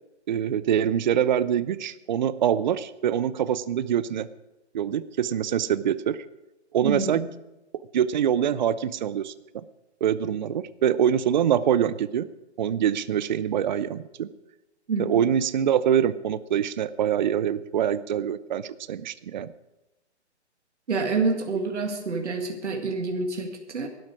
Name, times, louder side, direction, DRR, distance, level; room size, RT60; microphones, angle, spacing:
voice 1, 0.3-4.3 4.7-6.2 6.7-7.2 7.9-9.3 10.0-12.3 12.6-14.3 15.0-19.5, right 9 dB, 40° right, 16 dB, 0.5 m, -24 dB
voice 2, 6.8-7.3 14.9-15.3 20.9-23.9, right 4 dB, 80° right, 3 dB, 2.2 m, -27 dB
18.0 x 12.5 x 4.9 m, 1.0 s
hypercardioid pair, 150°, 35 cm